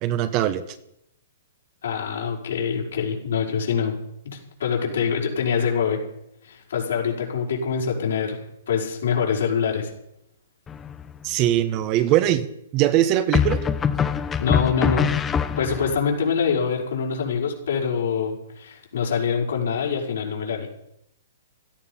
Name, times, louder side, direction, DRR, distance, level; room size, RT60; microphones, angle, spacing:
voice 1, 0.0-0.6 11.2-12.5 12.7-13.6, right 12 dB, 30° right, 11 dB, 1.1 m, -21 dB
voice 2, 1.8-3.9 4.2-6.0 6.4-8.4 8.7-9.9 14.4-15.1 15.6-20.7, left 6 dB, 75° left, -1 dB, 5.4 m, -25 dB
sound 1, 10.7-11.2 13.3-16.0, left 7 dB, 15° left, 0.7 m, -23 dB
16.5 x 13.5 x 5.6 m, 0.78 s
hypercardioid pair, 150°, 0 cm